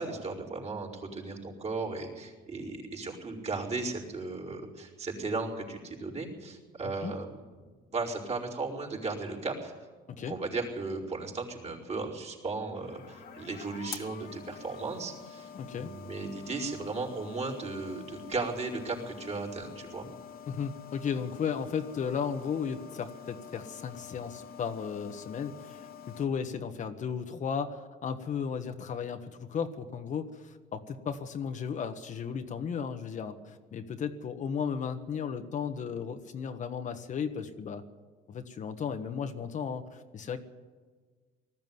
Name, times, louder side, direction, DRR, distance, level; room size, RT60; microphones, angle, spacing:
voice 1, 0.0-7.4 7.9-9.7 10.3-20.1, right 3 dB, 40° right, -2 dB, 4.9 m, -36 dB
sound 1, 12.7-26.2, left 8 dB, 65° left, 2.0 m, -47 dB
voice 2, 15.5-15.9 20.5-25.9 26.2-37.8 38.3-40.4, left 7 dB, 45° left, 7 dB, 1.4 m, -35 dB
19.5 x 14.0 x 9.5 m, 1.4 s
cardioid pair, 110°, 17 cm